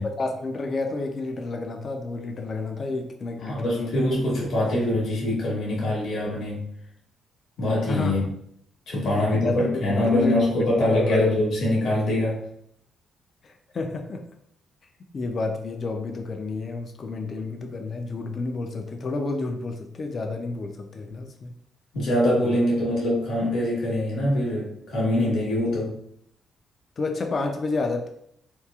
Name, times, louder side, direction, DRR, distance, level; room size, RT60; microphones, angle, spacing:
voice 1, 0.0-3.9 4.3-4.4 7.9-8.1 9.2-10.4 10.9-11.2 13.4-14.2 15.1-21.5 22.4-22.6 27.0-28.1, left 3 dB, 40° left, 4 dB, 0.3 m, -30 dB
voice 2, 3.4-6.7 7.6-8.2 8.9-12.4 21.9-26.0, left 1 dB, 65° left, -5 dB, 1.2 m, -23 dB
2.9 x 2.3 x 2.2 m, 0.70 s
cardioid pair, 125°, 0 cm